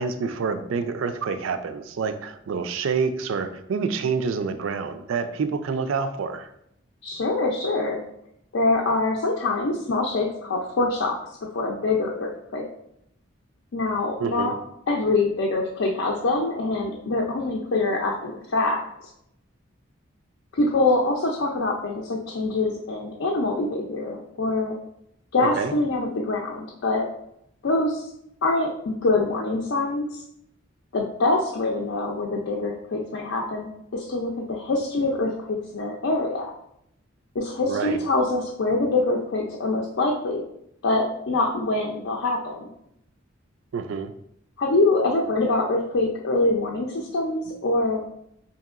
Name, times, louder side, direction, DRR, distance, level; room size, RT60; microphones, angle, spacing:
voice 1, 0.0-6.5 14.2-14.6 25.4-25.7 37.7-38.0 43.7-44.1, right 5 dB, 85° right, 10 dB, 0.4 m, -27 dB
voice 2, 7.0-8.0 8.5-12.6 13.7-14.5 14.9-19.1 20.5-24.8 25.3-27.1 27.6-28.1 28.4-30.2 30.9-36.5 37.3-40.4 40.8-42.7 44.6-48.0, left 2 dB, 70° left, 0 dB, 0.5 m, -24 dB
5.2 x 2.8 x 2.4 m, 0.77 s
head